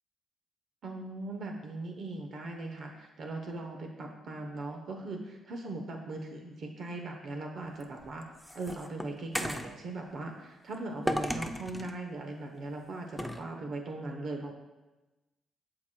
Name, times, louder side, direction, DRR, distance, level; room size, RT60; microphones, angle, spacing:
voice 1, 0.8-8.3 8.5-14.5, right 2 dB, 60° right, 2 dB, 0.9 m, -39 dB
sound 1, 7.8-9.7 11.1-12.0 13.2-13.4, equal, 5° left, 0.5 m, -34 dB
13.0 x 4.8 x 2.3 m, 1.1 s
cardioid pair, 90°, 0 cm